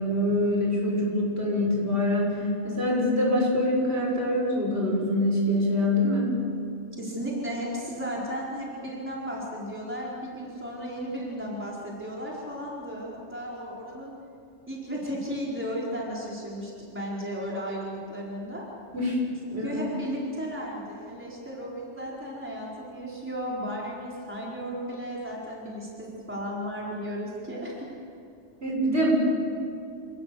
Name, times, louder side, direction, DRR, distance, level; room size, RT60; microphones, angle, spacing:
voice 1, 0.0-6.2 18.9-19.2 19.5-19.9 28.6-29.1, left 1 dB, 60° right, -3 dB, 7.2 m, -25 dB
voice 2, 7.0-14.1 14.7-18.6 19.4-27.9, equal, 10° right, -4 dB, 4.6 m, -34 dB
28.5 x 19.5 x 7.8 m, 2.5 s
omnidirectional pair, 1.2 m